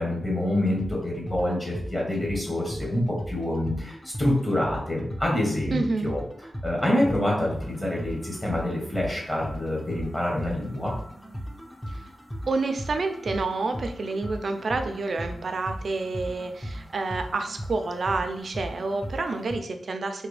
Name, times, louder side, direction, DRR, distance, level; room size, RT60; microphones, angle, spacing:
voice 1, 0.0-6.2 6.6-10.9, left 1 dB, 15° left, -3 dB, 1.0 m, -26 dB
sound 1, 0.7-19.6, equal, ahead, 0.5 m, -38 dB
voice 2, 5.7-6.1 12.5-20.3, right 3 dB, 60° right, 6 dB, 0.4 m, -29 dB
3.3 x 2.2 x 3.2 m, 0.67 s
wide cardioid pair, 90°, 0 cm